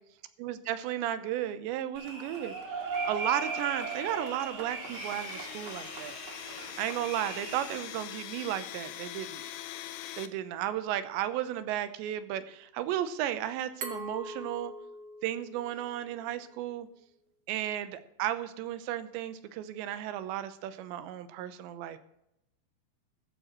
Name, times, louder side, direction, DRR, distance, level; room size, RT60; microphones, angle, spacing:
voice 1, 0.4-2.5 3.0-6.2 6.8-9.4 10.2-14.7 15.2-16.9 17.5-22.0, right 12 dB, 85° right, 11 dB, 3.1 m, -34 dB
sound 1, 1.9-7.8, right 3 dB, 40° right, 2.1 m, -38 dB
Domestic sounds home sounds, 4.8-10.3, left 12 dB, 80° left, 3.0 m, -43 dB
Glass, 13.8-16.6, right 1 dB, 60° right, 1.4 m, -43 dB
14.5 x 14.0 x 3.1 m, 0.82 s
omnidirectional pair, 5.1 m